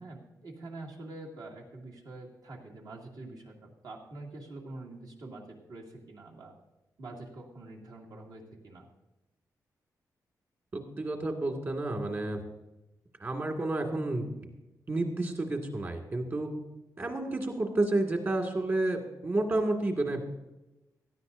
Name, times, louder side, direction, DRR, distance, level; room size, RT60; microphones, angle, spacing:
voice 1, 0.0-6.5 7.0-8.9, right 2 dB, 75° right, -1 dB, 2.5 m, -45 dB
voice 2, 10.7-12.4 13.2-14.5 14.9-16.5 17.0-20.3, right 2 dB, 35° right, 2 dB, 2.0 m, -30 dB
17.5 x 13.0 x 2.6 m, 1.0 s
wide cardioid pair, 155°, 7 cm